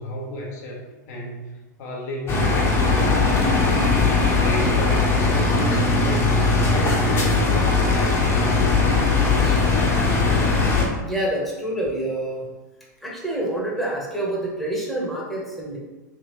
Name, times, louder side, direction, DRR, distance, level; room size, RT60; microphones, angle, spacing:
voice 1, 0.0-3.4 4.2-9.1, left 1 dB, 55° left, -1 dB, 1.0 m, -33 dB
sound 1, 2.3-10.9, left 3 dB, 25° left, 1.0 m, -19 dB
voice 2, 11.0-12.5 13.0-15.8, right 1 dB, ahead, -4 dB, 1.1 m, -27 dB
3.5 x 3.4 x 3.1 m, 1.1 s
hypercardioid pair, 95°, 10 cm